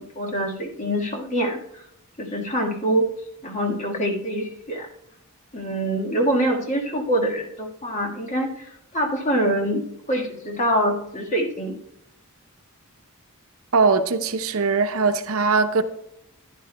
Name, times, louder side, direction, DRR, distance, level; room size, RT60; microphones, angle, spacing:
voice 1, 0.0-1.6 2.2-3.1 3.4-4.9 5.5-11.8, equal, 35° left, 1.5 m, -25 dB
voice 2, 13.7-15.8, right 4 dB, 70° right, 0.7 m, -20 dB
15.0 x 10.5 x 2.2 m
head